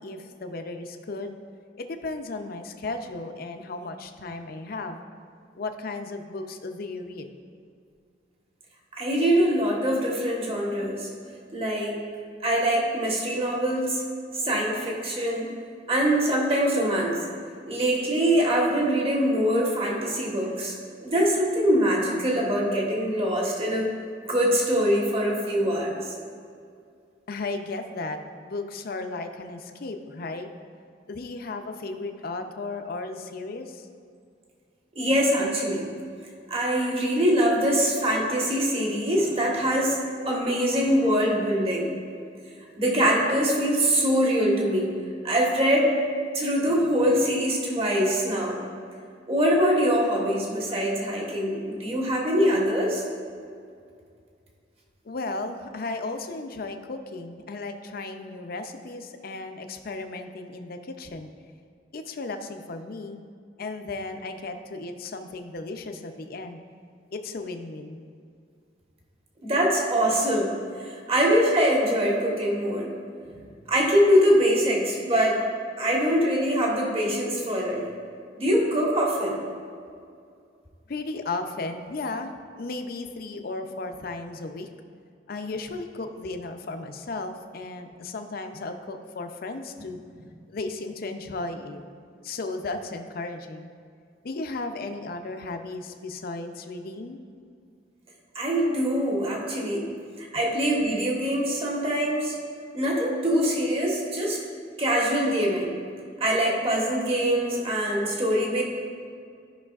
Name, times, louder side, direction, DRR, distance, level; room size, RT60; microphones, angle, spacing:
voice 1, 0.0-1.3 1.8-5.0 5.5-7.3 27.3-30.5 31.1-33.9 55.0-61.3 61.9-63.2 63.6-66.6 67.1-68.0 80.9-84.7 85.3-90.0 90.5-91.8 92.2-93.7 94.2-97.2, left 3 dB, 55° left, 6 dB, 0.5 m, -35 dB
voice 2, 8.9-11.1 11.5-12.0 12.4-14.0 14.4-15.5 15.9-17.2 17.7-20.8 21.0-24.0 24.2-26.0 34.9-35.9 36.5-41.9 42.8-44.9 45.2-46.0 46.3-48.6 49.3-53.0 69.4-72.9 73.7-75.4 75.8-77.9 78.4-79.4 98.3-99.9 100.2-102.3 102.7-104.4 104.8-105.7 106.2-108.6, equal, 35° right, -2 dB, 1.3 m, -23 dB
13.5 x 5.5 x 2.4 m, 2.3 s
head